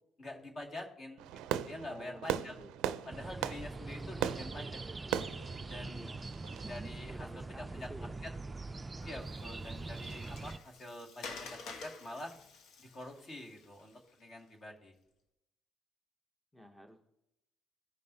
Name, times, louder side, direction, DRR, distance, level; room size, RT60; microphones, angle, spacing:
voice 1, 0.2-2.6 3.1-5.1 5.7-6.1 6.6-7.9 9.0-12.3 12.8-14.9, left 1 dB, 40° left, 1 dB, 2.1 m, -46 dB
Fireworks, 1.2-6.8, right 11 dB, 90° right, 0.4 m, -38 dB
voice 2, 1.8-3.1 5.8-6.3 7.1-8.2 16.5-17.0, equal, 5° left, 4 dB, 0.8 m, -52 dB
sound 1, 3.1-10.6, right 3 dB, 25° right, 0.4 m, -43 dB
Water, 9.0-14.4, left 4 dB, 75° left, 1.1 m, -50 dB
15.0 x 5.3 x 2.7 m, 0.83 s
cardioid pair, 90°, 0 cm